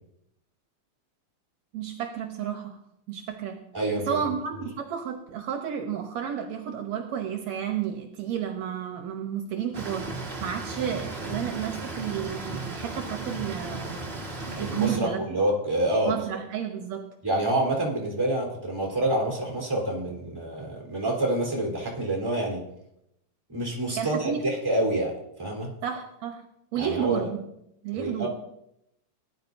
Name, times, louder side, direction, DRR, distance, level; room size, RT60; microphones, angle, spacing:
voice 1, 1.7-2.8 3.1-3.6 4.0-10.1 10.4-14.0 14.6-15.2 16.0-17.1 23.9-24.5 25.8-26.4 26.7-27.4 27.8-28.3, right 8 dB, 75° right, 4 dB, 2.1 m, -31 dB
voice 2, 3.7-4.2 14.6-16.1 17.2-22.6 23.5-25.1 25.4-25.7 26.8-27.2 27.9-28.3, right 1 dB, 5° right, -3 dB, 3.2 m, -27 dB
sound 1, 9.7-15.0, right 2 dB, 25° right, 1.5 m, -35 dB
19.5 x 10.5 x 2.7 m, 0.80 s
omnidirectional pair, 3.4 m